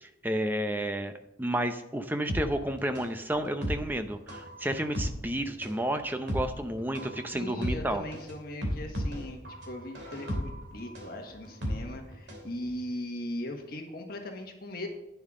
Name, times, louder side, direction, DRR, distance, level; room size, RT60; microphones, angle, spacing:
voice 1, 0.0-1.1 1.4-8.0, right 1 dB, 10° right, 7 dB, 0.6 m, -31 dB
sound 1, 2.3-12.5 12.8-12.9, equal, 65° right, 2.6 m, -35 dB
voice 2, 7.3-9.4 9.6-14.9, left 1 dB, 50° left, 3 dB, 1.5 m, -39 dB
10.5 x 9.4 x 3.7 m, 0.91 s
head